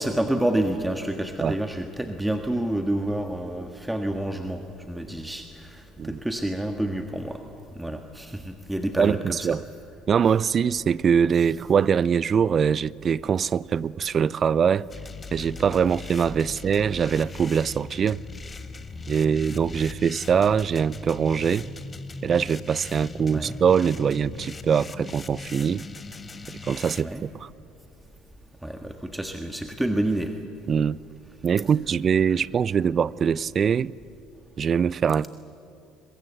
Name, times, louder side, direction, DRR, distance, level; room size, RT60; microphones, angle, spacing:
voice 1, 0.0-7.4 7.8-9.4 23.3-23.5 27.0-27.2 28.6-30.3 32.3-32.4, right 1 dB, 5° right, 1.6 m, -28 dB
voice 2, 9.0-9.6 10.1-14.9 15.3-18.2 19.1-21.7 22.2-25.8 26.5-27.5 30.7-31.0 31.4-33.9 34.6-35.3, right 7 dB, 40° right, 0.5 m, -23 dB
sound 1, 14.9-27.0, left 3 dB, 25° left, 1.5 m, -39 dB
22.5 x 22.0 x 8.2 m
hypercardioid pair, 60°, 0 cm